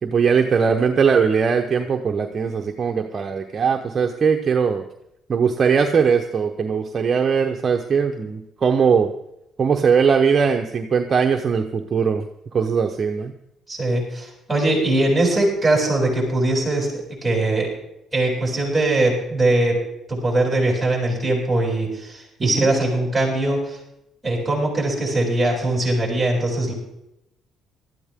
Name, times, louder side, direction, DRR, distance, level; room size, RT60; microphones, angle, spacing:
voice 1, 0.0-4.9 5.3-9.1 9.6-12.2 12.5-13.3 22.4-22.7, right 6 dB, 40° right, 4 dB, 1.0 m, -20 dB
voice 2, 13.7-17.7 18.1-19.8 20.1-23.8 24.2-26.7, right 2 dB, 10° right, -2 dB, 7.5 m, -21 dB
19.0 x 13.5 x 3.7 m, 0.84 s
cardioid pair, 115°, 0 cm